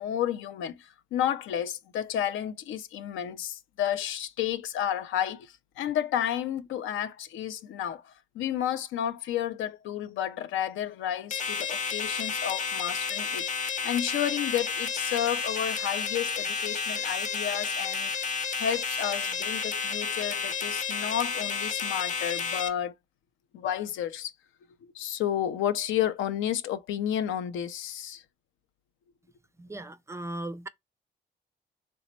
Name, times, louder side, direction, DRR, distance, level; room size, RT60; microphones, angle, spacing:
voice 1, 0.0-18.1 18.6-22.9 23.5-24.3 24.9-28.2, left 10 dB, 80° left, 0.5 m, -31 dB
sound 1, 11.3-22.7, left 5 dB, 40° left, 0.8 m, -31 dB
voice 2, 29.6-30.7, right 1 dB, 15° right, 0.3 m, -37 dB
3.3 x 2.0 x 4.0 m
cardioid pair, 90°, 20 cm